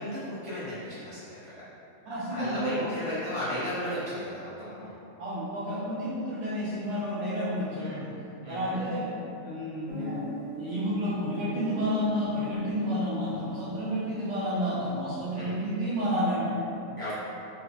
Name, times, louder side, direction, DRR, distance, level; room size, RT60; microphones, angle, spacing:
voice 1, 0.0-1.6 2.3-4.9 7.8-8.0 8.4-8.8 15.4-15.5 17.0-17.2, equal, 35° left, -13 dB, 0.6 m, -35 dB
voice 2, 2.1-2.9 5.2-8.1 8.5-9.1 9.4-10.2 10.5-16.6, equal, 85° right, -9 dB, 1.5 m, -30 dB
Guitar, 9.9-14.4, left 1 dB, 90° left, 0.3 m, -42 dB
4.2 x 2.1 x 2.7 m, 2.8 s
omnidirectional pair, 1.5 m